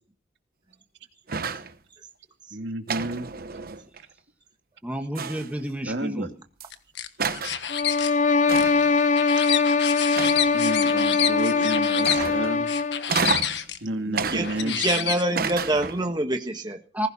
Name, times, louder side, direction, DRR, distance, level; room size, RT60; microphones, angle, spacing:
sound 1, 1.3-1.8 2.9-4.0 5.2-5.7 6.6-6.7 7.2-7.6 8.5-8.9 10.2-10.7 12.0-12.6 13.1-13.6 14.2-14.9 15.4-16.1, right 5 dB, 55° right, 1.1 m, -30 dB
voice 1, 2.5-3.3 5.9-6.3 10.5-12.7 13.8-14.8, right 1 dB, 70° right, 5 dB, 2.4 m, -30 dB
voice 2, 4.8-6.3 14.1-14.3 14.6-14.8 16.9-17.1, right 1 dB, 10° right, 4 dB, 1.7 m, -31 dB
sound 2, 6.7-8.1 8.6-12.2 12.7-13.8 14.4-15.5, left 10 dB, 70° left, 1.5 m, -28 dB
sound 3, 7.7-13.1, left 4 dB, 40° left, 0.7 m, -22 dB
voice 3, 14.3-16.8, right 1 dB, 25° right, 4 dB, 1.5 m, -26 dB
20.0 x 16.0 x 4.3 m, 0.39 s
head